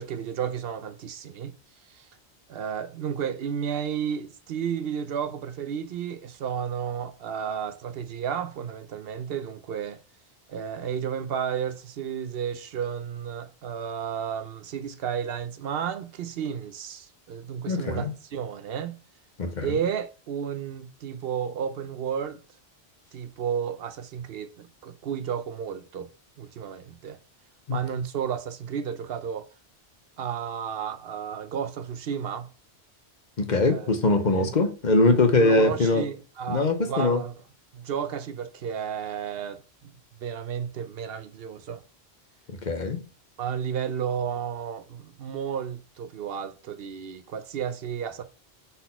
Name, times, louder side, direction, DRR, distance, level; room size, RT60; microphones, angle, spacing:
voice 1, 0.0-1.5 1.9-2.1 2.5-10.0 10.5-19.0 19.6-22.4 23.1-26.1 26.4-27.2 27.7-29.5 30.2-32.5 33.7-33.9 34.2-34.7 35.4-37.3 37.7-41.8 43.4-48.2, right 8 dB, 70° right, 0.8 m, -32 dB
voice 2, 17.7-18.1 19.4-19.7 27.7-27.8 33.4-36.0 36.5-37.2 42.6-43.0, left 2 dB, 50° left, 0.9 m, -22 dB
4.2 x 4.1 x 5.4 m
omnidirectional pair, 1.1 m